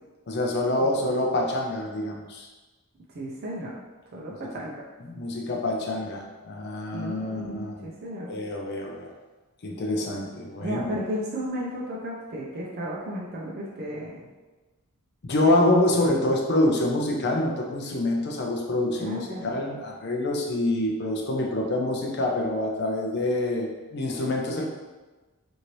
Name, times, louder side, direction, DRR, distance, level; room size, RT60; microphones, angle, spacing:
voice 1, 0.3-2.5 5.0-7.9 8.3-9.1 9.6-10.8 15.2-24.7, left 1 dB, 50° left, 0 dB, 0.5 m, -26 dB
voice 2, 3.1-3.8 4.1-4.8 6.9-8.3 10.6-14.2 15.6-15.8 16.0-16.3 19.0-19.5, equal, 45° right, -5 dB, 0.4 m, -34 dB
2.8 x 2.6 x 3.0 m, 1.2 s
head